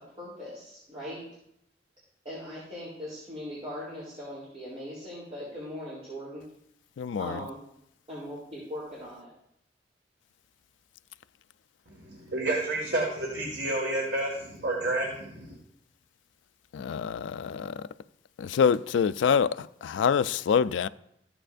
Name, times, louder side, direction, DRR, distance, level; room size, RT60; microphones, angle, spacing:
voice 1, 0.2-1.2 2.2-6.4 7.2-7.6 8.1-9.3, equal, 35° right, 3.6 m, -40 dB
voice 2, 7.0-7.4 16.7-17.8 18.4-20.9, left 6 dB, 85° left, 0.3 m, -26 dB
voice 3, 11.9-15.6, right 2 dB, 65° right, 1.9 m, -30 dB
14.5 x 8.8 x 2.6 m
head